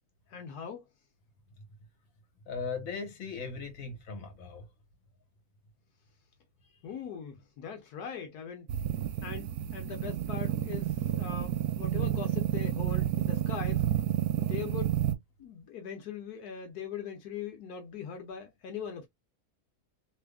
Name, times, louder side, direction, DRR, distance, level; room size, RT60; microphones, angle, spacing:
voice 1, 0.3-0.8 6.8-8.7 9.2-13.8 14.4-14.9 15.4-19.1, left 7 dB, 85° left, 1.4 m, -40 dB
voice 2, 2.5-4.7, left 5 dB, 60° left, 1.6 m, -38 dB
sound 1, 8.7-15.1, right 12 dB, 75° right, 1.1 m, -30 dB
3.5 x 3.2 x 2.3 m
omnidirectional pair, 1.6 m